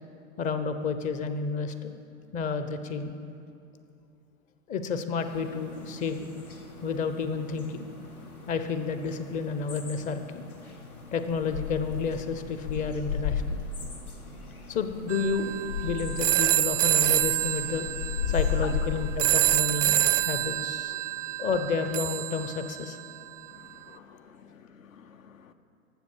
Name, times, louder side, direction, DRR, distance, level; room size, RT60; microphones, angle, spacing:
voice 1, 0.4-1.9 2.3-3.1 4.7-6.3 6.8-7.9 8.5-10.4 11.1-13.6 14.7-15.5 15.8-17.9 18.3-21.0 21.4-23.0 23.9-24.2, left 5 dB, 20° left, 0.5 m, -31 dB
sound 1, 5.2-20.2, left 6 dB, 85° left, 1.7 m, -36 dB
sound 2, 15.1-23.2, right 14 dB, 65° right, 0.5 m, -27 dB
voice 2, 23.5-25.5, left 9 dB, 70° left, 0.8 m, -48 dB
13.0 x 7.4 x 6.2 m
figure-of-eight pair, 100°, 42 cm